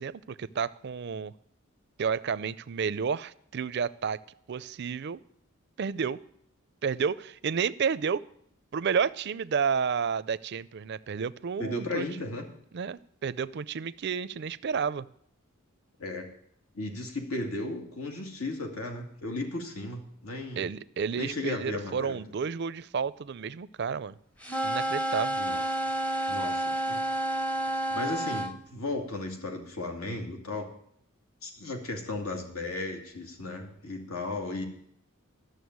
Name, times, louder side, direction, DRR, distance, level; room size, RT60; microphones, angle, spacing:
voice 1, 0.0-1.3 2.0-4.2 4.5-5.2 5.8-6.2 6.8-8.2 8.7-12.1 12.7-15.1 20.6-24.2 24.6-25.4, right 6 dB, 50° right, 17 dB, 0.4 m, -31 dB
voice 2, 11.6-12.5 16.0-16.3 16.7-20.7 21.2-22.2 25.4-25.6 26.3-27.0 27.9-30.7 31.4-34.6, left 2 dB, 85° left, 3 dB, 2.3 m, -35 dB
sound 1, 24.4-28.5, right 1 dB, 5° left, 0.6 m, -30 dB
13.0 x 6.6 x 9.4 m, 0.69 s
head